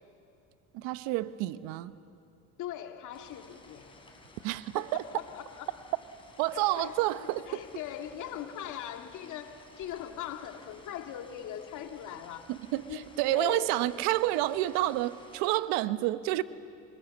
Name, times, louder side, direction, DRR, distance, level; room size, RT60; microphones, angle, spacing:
voice 1, 0.7-1.9 4.4-5.0 6.4-7.6 12.5-16.4, right 16 dB, 65° right, 1.0 m, -29 dB
voice 2, 2.6-4.0 4.7-5.8 6.5-7.0 7.4-12.5 12.9-13.0 13.3-13.7, left 10 dB, 50° left, 2.4 m, -40 dB
sound 1, 3.1-15.4, left 2 dB, 15° left, 5.2 m, -55 dB
28.0 x 24.0 x 7.3 m
supercardioid pair, 100°, 37 cm